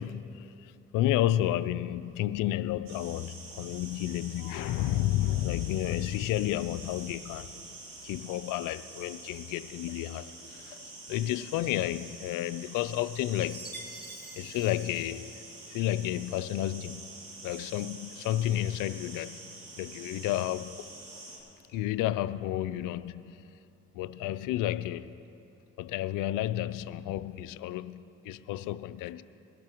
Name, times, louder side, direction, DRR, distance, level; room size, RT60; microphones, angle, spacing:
voice 1, 0.0-7.6 8.0-13.7 14.4-15.4 15.7-17.0 17.4-20.9 21.7-23.5 23.9-25.2 25.8-29.2, left 13 dB, 75° left, 0.5 m, -31 dB
sound 1, 2.9-21.4, right 2 dB, 80° right, 2.5 m, -47 dB
Chime, 13.5-15.8, right 2 dB, 30° right, 1.8 m, -48 dB
21.0 x 12.0 x 3.0 m
hypercardioid pair, 55°, 32 cm